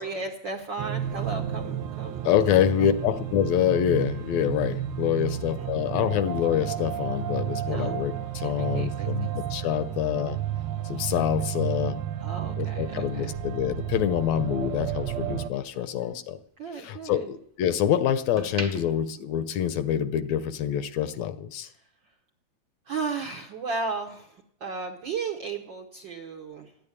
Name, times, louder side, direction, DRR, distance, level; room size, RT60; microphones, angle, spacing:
voice 1, 0.0-2.5 5.3-5.9 7.7-8.0 8.4-9.3 9.8-10.3 12.2-13.4 15.7-16.2 16.6-17.3 21.7-22.1 22.8-26.8, right 4 dB, 60° right, 2 dB, 1.2 m, -36 dB
sound 1, 0.8-15.5, right 10 dB, 80° right, 1.1 m, -32 dB
voice 2, 2.2-10.4 10.8-12.0 12.6-16.4 16.8-21.7, left 10 dB, 75° left, 11 dB, 1.8 m, -26 dB
sound 2, 13.5-15.9 16.3-17.7 18.1-20.3 20.6-20.8, right 1 dB, 15° right, 1.1 m, -42 dB
13.0 x 8.9 x 9.7 m, 0.73 s
omnidirectional pair, 3.3 m